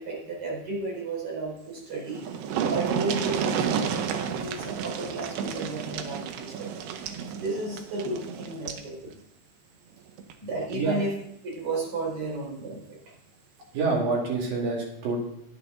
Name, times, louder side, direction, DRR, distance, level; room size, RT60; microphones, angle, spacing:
voice 1, 0.0-2.2 2.7-6.8 7.3-9.2 10.4-11.1 11.4-12.8, right 2 dB, 35° right, -3 dB, 4.6 m, -33 dB
sound 1, 1.8-1.9 2.1-8.9 10.2-10.3 10.7-10.8, right 7 dB, 75° right, 2.5 m, -31 dB
voice 2, 13.7-15.2, right 3 dB, 60° right, -2 dB, 3.7 m, -27 dB
10.5 x 10.0 x 3.8 m, 0.75 s
omnidirectional pair, 5.0 m